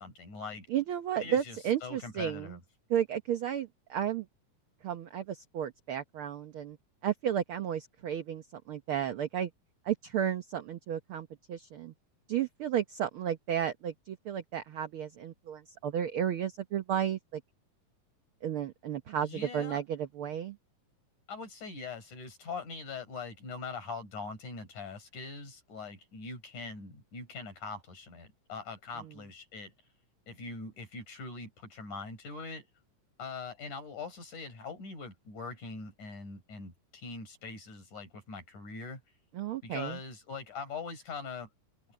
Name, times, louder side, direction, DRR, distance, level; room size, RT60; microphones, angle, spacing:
voice 1, 0.0-0.7 1.2-2.6 19.2-19.8 21.3-29.7 30.3-32.7 33.2-39.0 39.6-41.5, left 4 dB, 70° left, 8.0 m, -42 dB
voice 2, 0.7-2.6 2.9-4.3 4.8-6.8 7.0-9.5 9.8-11.9 12.3-17.4 18.4-20.6 29.0-29.1 39.3-40.0, right 9 dB, 65° right, 1.4 m, -33 dB
open air
omnidirectional pair, 3.6 m